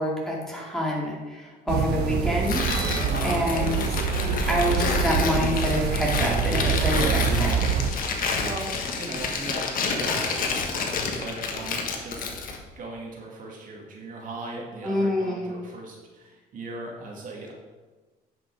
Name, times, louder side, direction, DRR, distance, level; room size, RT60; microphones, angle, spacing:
voice 1, 0.0-4.0 4.5-7.7 14.8-15.5, left 1 dB, ahead, -4 dB, 2.6 m, -27 dB
sound 1, 1.7-7.9, right 6 dB, 80° right, 0.9 m, -25 dB
Tearing, 2.4-12.6, left 4 dB, 55° left, 1.4 m, -29 dB
voice 2, 3.1-3.5 8.4-12.2 12.8-17.5, right 2 dB, 55° right, -1 dB, 2.3 m, -38 dB
10.0 x 6.0 x 4.8 m, 1.3 s
cardioid pair, 110°, 17 cm